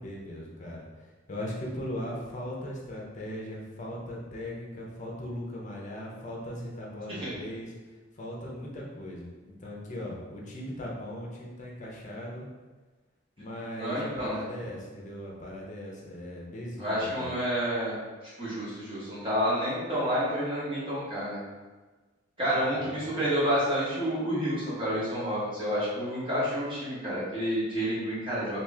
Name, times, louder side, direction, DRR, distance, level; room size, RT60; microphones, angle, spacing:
voice 1, 0.0-7.7 8.1-12.5 13.4-17.3 22.5-23.0, left 1 dB, 40° left, -2 dB, 0.7 m, -39 dB
voice 2, 13.8-14.5 16.8-18.0 18.4-21.4 22.4-28.6, equal, 25° right, -9 dB, 1.3 m, -29 dB
2.9 x 2.7 x 3.5 m, 1.3 s
head